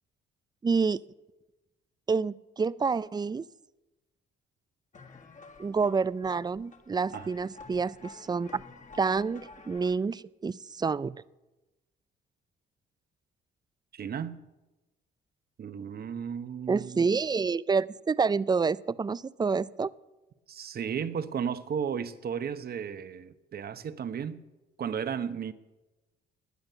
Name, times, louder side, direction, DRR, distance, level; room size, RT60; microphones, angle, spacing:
voice 1, 0.6-1.0 2.1-3.5 5.6-8.6 8.9-11.2 16.7-19.9, right 5 dB, 20° right, 0.4 m, -28 dB
sound 1, 4.9-10.0, left 4 dB, 40° left, 1.8 m, -50 dB
voice 2, 13.9-14.4 15.6-17.1 20.5-24.4 24.8-25.5, right 7 dB, 50° right, 1.0 m, -34 dB
20.0 x 8.0 x 6.9 m
cardioid pair, 90°, 20 cm